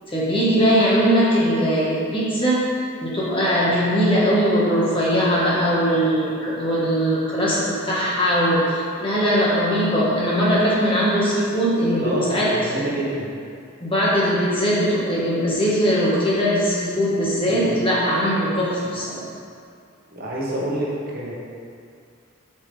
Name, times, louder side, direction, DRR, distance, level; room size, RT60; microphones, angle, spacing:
voice 1, 0.1-2.6 3.0-12.5 12.7-12.9 13.8-19.2, equal, 25° left, -7 dB, 1.6 m, -20 dB
voice 2, 12.0-13.3 17.5-17.7 20.1-21.3, right 1 dB, 45° right, -5 dB, 1.4 m, -28 dB
8.7 x 5.8 x 3.4 m, 2.3 s
head